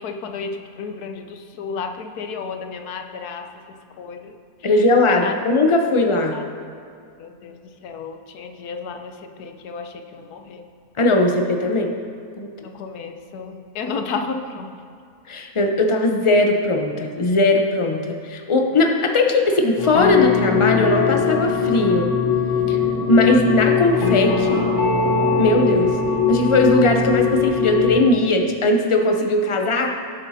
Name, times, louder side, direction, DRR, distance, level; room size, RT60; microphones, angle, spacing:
voice 1, 0.0-4.4 5.1-5.3 6.3-6.4 7.2-10.6 12.6-14.7, left 5 dB, 90° left, 6 dB, 1.3 m, -32 dB
voice 2, 4.6-6.4 11.0-11.9 12.4-12.5 15.3-22.1 22.7-22.8 23.1-24.6 25.4-25.9 26.3-29.9, left 2 dB, 35° left, 3 dB, 0.5 m, -19 dB
sound 1, 19.8-28.0, left 6 dB, 55° left, 1.2 m, -20 dB
17.0 x 7.1 x 2.8 m, 2.3 s
omnidirectional pair, 1.6 m